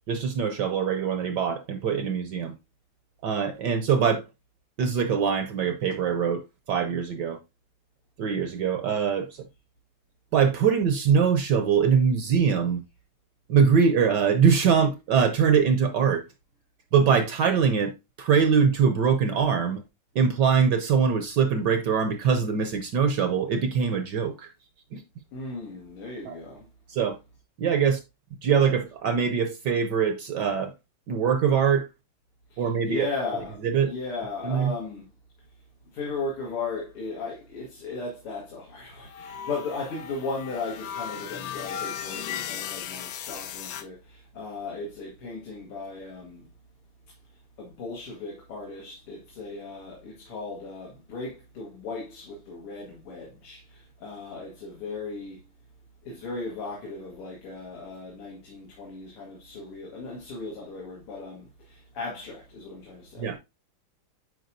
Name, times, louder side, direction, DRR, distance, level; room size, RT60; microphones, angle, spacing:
voice 1, 0.1-2.5 3.2-4.2 4.8-6.4 6.7-7.4 8.2-9.5 10.3-12.8 13.5-16.3 16.9-17.9 18.2-19.8 20.1-24.5 24.9-25.0 26.2-26.4 26.9-27.2 27.6-28.0 28.4-30.7 31.1-31.9 32.6-33.1 33.6-33.9 34.4-34.7 63.2-63.4, right 6 dB, 65° right, 1.1 m, -23 dB
voice 2, 25.3-26.6 32.5-35.1 35.9-46.5 47.6-55.4 56.0-63.3, left 3 dB, 90° left, 2.6 m, -36 dB
sound 1, 39.1-43.8, left 9 dB, 75° left, 1.2 m, -36 dB
9.2 x 4.8 x 2.6 m
omnidirectional pair, 2.4 m